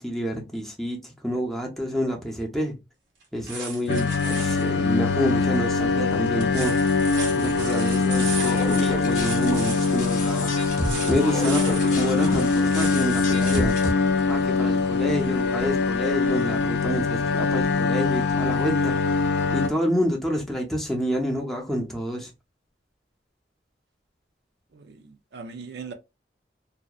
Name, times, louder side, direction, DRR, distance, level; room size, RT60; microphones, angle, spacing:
voice 1, 0.0-2.8 3.3-6.8 7.4-10.5 11.0-13.8 14.3-18.9 19.5-22.3, equal, ahead, 0.5 m, -28 dB
sound 1, 3.2-4.7 6.3-13.8 14.2-14.3, right 4 dB, 90° right, 0.9 m, -36 dB
sound 2, 3.9-19.7, left 4 dB, 65° left, 0.3 m, -23 dB
sound 3, 8.4-13.9, left 1 dB, 45° left, 0.7 m, -32 dB
voice 2, 24.7-25.9, right 3 dB, 65° right, 0.4 m, -36 dB
2.7 x 2.0 x 2.3 m
head